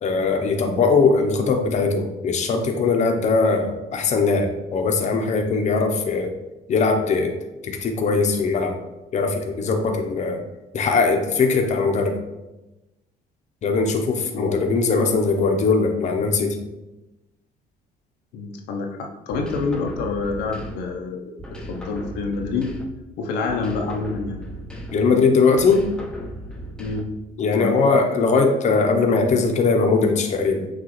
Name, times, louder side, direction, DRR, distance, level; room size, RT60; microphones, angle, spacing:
voice 1, 0.0-6.3 6.7-7.3 7.6-8.8 9.1-10.4 10.7-12.2 13.6-16.6 24.9-25.9 27.4-30.7, left 4 dB, 45° left, 4 dB, 0.6 m, -20 dB
voice 2, 14.3-14.6 18.3-21.3 21.7-22.7 23.2-24.4 26.8-27.1 27.5-27.9, left 4 dB, 85° left, 2 dB, 0.6 m, -27 dB
sound 1, 19.3-21.0 21.4-23.1 23.5-25.2 25.6-27.3, equal, 5° left, 0.5 m, -36 dB
6.2 x 2.4 x 3.0 m, 1.0 s
cardioid pair, 110°, 17 cm